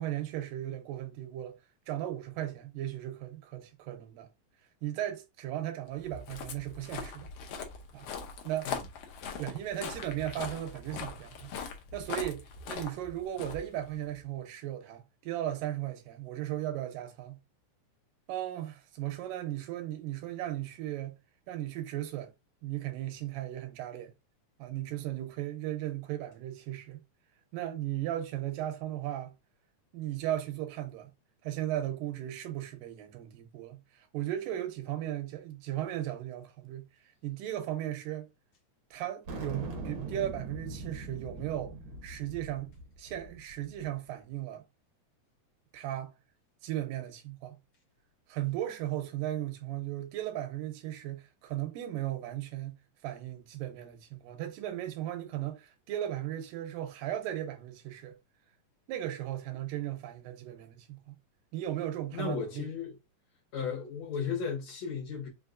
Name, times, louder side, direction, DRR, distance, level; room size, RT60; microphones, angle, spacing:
voice 1, 0.0-1.6 1.9-4.3 4.8-7.3 7.9-8.1 8.4-8.7 9.4-11.5 11.9-17.4 18.3-21.2 21.5-22.3 22.6-24.1 24.6-27.0 27.5-29.4 29.9-31.1 31.4-36.9 37.2-38.3 38.9-41.8 42.0-42.7 43.0-44.6 45.7-46.1 46.6-47.6 48.3-52.8 53.0-58.2 58.9-61.2 61.5-62.7, right 13 dB, 85° right, 2.5 m, -36 dB
Walk footsteps, 5.9-14.2, left 6 dB, 80° left, 1.4 m, -41 dB
sound 1, 39.3-43.9, right 3 dB, 70° right, 1.2 m, -42 dB
voice 2, 62.1-63.0 63.5-65.3, left 6 dB, 60° left, 2.2 m, -35 dB
5.6 x 2.7 x 2.5 m
omnidirectional pair, 3.8 m